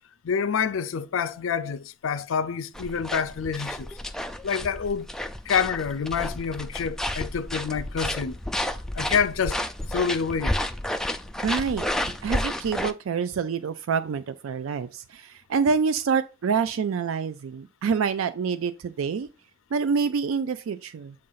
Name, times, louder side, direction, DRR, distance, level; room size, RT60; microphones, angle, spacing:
voice 1, 0.2-3.9 4.4-5.1 5.5-8.4 8.9-9.6 9.9-10.6, left 6 dB, 75° left, 0.4 m, -27 dB
sound 1, 2.7-12.9, left 1 dB, 5° left, 0.3 m, -31 dB
voice 2, 11.4-11.8 12.2-19.3 19.7-21.1, right 5 dB, 85° right, 0.4 m, -27 dB
7.6 x 2.5 x 5.5 m
head